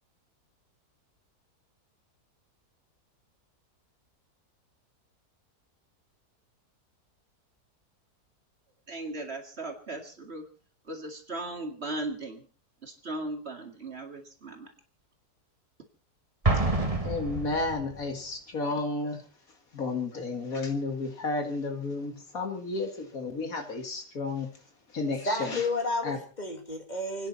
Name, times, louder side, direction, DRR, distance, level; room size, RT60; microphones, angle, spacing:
voice 1, 8.9-10.5 10.8-12.5 12.8-14.7, right 2 dB, 40° right, 3 dB, 2.4 m, -37 dB
Explosion, 16.4-18.0, right 2 dB, 20° right, 2.2 m, -27 dB
voice 2, 17.0-25.7 26.0-26.2, left 3 dB, 55° left, 5 dB, 2.4 m, -33 dB
voice 3, 25.2-27.3, left 2 dB, 25° left, 4 dB, 2.1 m, -31 dB
29.5 x 10.0 x 4.1 m, 0.39 s
omnidirectional pair, 1.7 m